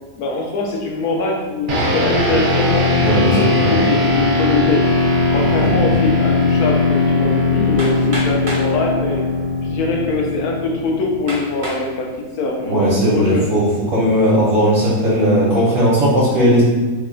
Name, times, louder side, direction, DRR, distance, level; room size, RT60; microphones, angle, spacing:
voice 1, 0.2-4.8 5.3-9.3 9.6-12.1 12.4-13.5, left 3 dB, 80° left, 0 dB, 1.1 m, -22 dB
sound 1, 1.7-11.3, left 3 dB, 85° right, 0.4 m, -18 dB
voice 2, 3.0-3.8 5.5-6.0 12.6-16.6, equal, 65° right, -8 dB, 1.0 m, -17 dB
Hammer, 7.8-8.7 9.6-9.7 10.3-10.4 11.3-11.9 12.5-12.9, equal, 45° right, 0.7 m, -29 dB
3.2 x 2.2 x 3.7 m, 1.3 s
omnidirectional pair, 1.6 m